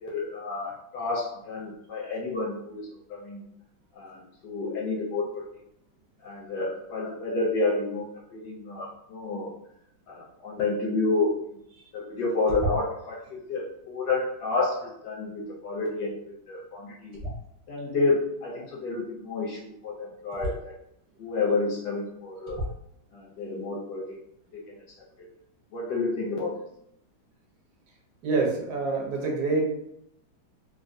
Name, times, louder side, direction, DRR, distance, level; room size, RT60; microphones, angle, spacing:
voice 1, 0.0-3.4 4.0-5.4 6.2-8.0 8.3-9.5 10.1-11.4 11.9-17.2 17.7-20.7 21.2-22.6 23.1-24.2 24.5-24.6 25.7-26.5, left 3 dB, 75° left, -3 dB, 0.9 m, -30 dB
sound 1, 12.5-13.1 17.1-17.8 20.3-20.5 21.5-21.6 22.5-22.9, equal, 35° right, 0.8 m, -33 dB
voice 2, 28.2-29.7, right 3 dB, 65° right, -2 dB, 1.1 m, -26 dB
3.5 x 2.2 x 2.5 m, 0.74 s
omnidirectional pair, 2.2 m